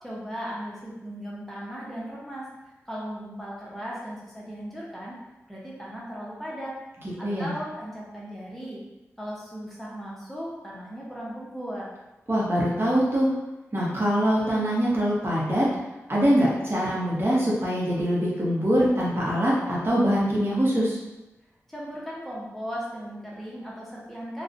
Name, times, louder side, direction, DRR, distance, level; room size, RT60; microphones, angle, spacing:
voice 1, 0.0-2.5 2.9-5.2 5.5-6.8 7.2-8.8 9.2-11.9 21.7-24.4, equal, 5° left, -6 dB, 0.7 m, -37 dB
voice 2, 12.3-13.3 13.7-15.7 16.1-21.0, equal, 40° right, -6 dB, 0.8 m, -23 dB
2.5 x 2.1 x 2.5 m, 1.0 s
cardioid pair, 40°, 6 cm